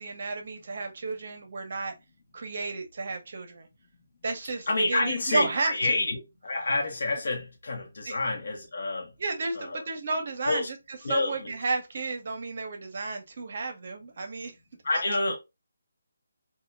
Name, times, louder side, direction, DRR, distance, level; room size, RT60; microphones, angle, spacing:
voice 1, 0.0-1.9 2.3-3.7 4.2-6.0 8.1-8.2 9.2-10.8 11.1-14.5, right 3 dB, 50° right, 0.6 m, -32 dB
voice 2, 4.7-9.1 9.5-9.9 10.4-10.7 11.0-11.5 14.8-15.4, left 2 dB, 60° left, 0.8 m, -28 dB
2.1 x 2.0 x 3.1 m
hypercardioid pair, 165°, 0 cm